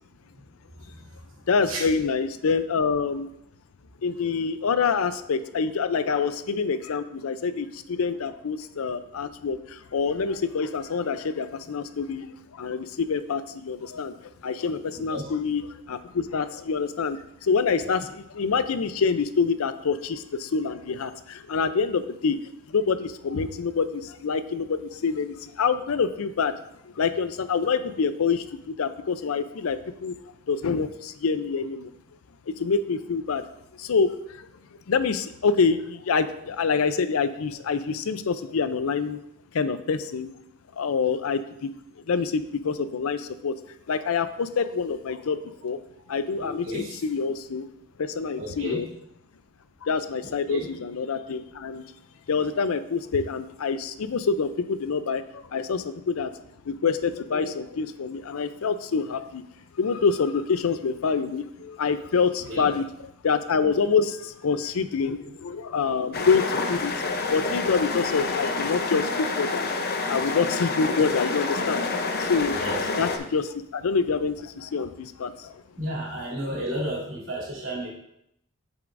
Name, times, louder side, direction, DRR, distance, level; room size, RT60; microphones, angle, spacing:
voice 1, 0.8-1.8 14.9-15.3 17.8-17.9 46.4-47.0 48.4-48.8 50.2-50.7 62.5-62.6 70.9-71.1 72.5-72.8 75.8-77.9, equal, 65° right, -5 dB, 2.8 m, -33 dB
voice 2, 1.5-3.3 4.0-14.1 14.4-15.6 15.9-22.4 22.7-26.6 27.0-30.1 30.5-31.9 32.5-33.4 33.8-34.5 34.9-39.2 39.5-40.3 40.8-41.7 42.1-43.5 43.9-45.4 45.6-45.8 46.1-47.7 48.0-48.9 49.8-51.8 52.3-56.3 56.7-59.4 59.8-62.8 63.2-66.9 67.3-69.6 70.1-71.8 72.2-72.6 73.0-75.6, left 5 dB, 80° left, 12 dB, 0.5 m, -26 dB
sound 1, 66.1-73.2, left 3 dB, 50° left, 0.7 m, -28 dB
7.9 x 7.1 x 2.6 m, 0.78 s
head